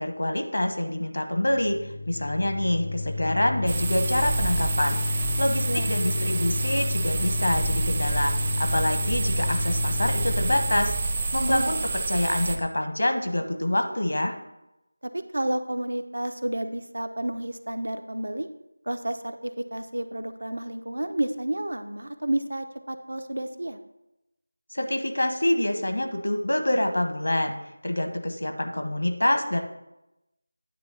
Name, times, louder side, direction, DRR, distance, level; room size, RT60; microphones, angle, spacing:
voice 1, 0.0-1.8 2.1-5.0 5.4-10.9 11.3-14.4 24.7-27.5 27.8-29.6, left 1 dB, 70° left, 5 dB, 1.2 m, -26 dB
sound 1, 1.4-11.2, left 2 dB, 30° left, 0.3 m, -30 dB
sound 2, 3.7-12.6, right 3 dB, 25° right, 0.6 m, -29 dB
voice 2, 11.5-11.9 15.0-18.5 18.9-23.8, right 1 dB, 70° right, 9 dB, 0.7 m, -31 dB
9.5 x 3.2 x 6.7 m, 0.90 s
figure-of-eight pair, 170°, 0 cm